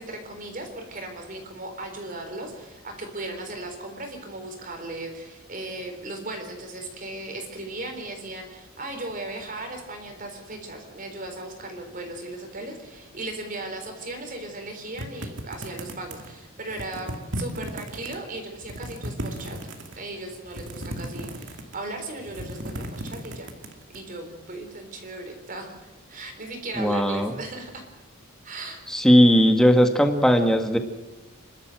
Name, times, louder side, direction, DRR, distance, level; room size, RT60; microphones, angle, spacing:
voice 1, 0.0-19.6 19.9-23.5 23.9-25.7 26.1-27.8 28.4-28.8, right 2 dB, 40° right, 4 dB, 3.9 m, -37 dB
sound 1, 15.0-16.3 16.7-18.2 18.5-20.0 20.5-21.9 22.2-24.0, right 1 dB, 60° right, 2.4 m, -35 dB
voice 2, 26.8-27.3 28.9-30.8, equal, 5° left, 5 dB, 1.7 m, -18 dB
27.5 x 12.5 x 7.8 m, 1.1 s
head